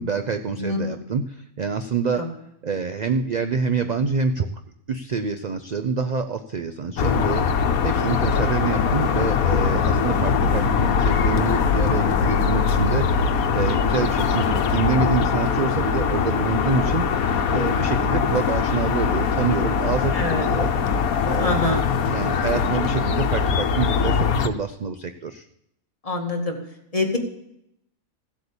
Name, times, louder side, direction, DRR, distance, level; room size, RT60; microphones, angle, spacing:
voice 1, 0.0-2.3 2.6-4.5 4.9-13.1 13.5-17.1 17.5-20.7 21.2-21.8 22.1-25.5, right 5 dB, 50° right, 8 dB, 0.5 m, -26 dB
voice 2, 0.6-1.0 2.2-2.3 20.1-20.5 21.4-21.8 26.0-26.6 26.9-27.2, left 2 dB, 25° left, 1 dB, 2.1 m, -25 dB
sound 1, 7.0-24.5, left 6 dB, 85° left, 1.3 m, -22 dB
15.5 x 8.1 x 7.0 m, 0.78 s
omnidirectional pair, 1.5 m